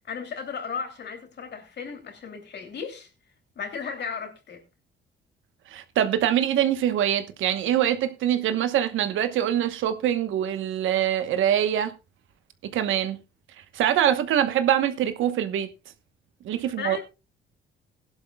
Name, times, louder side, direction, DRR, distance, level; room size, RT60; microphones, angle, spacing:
voice 1, 0.0-3.1 3.5-4.6 16.6-17.0, left 6 dB, 60° left, 3.0 m, -35 dB
voice 2, 5.7-11.9 12.6-13.2 13.7-15.7 16.4-17.0, right 10 dB, 80° right, 1.2 m, -24 dB
16.5 x 11.5 x 2.3 m
cardioid pair, 90°, 20 cm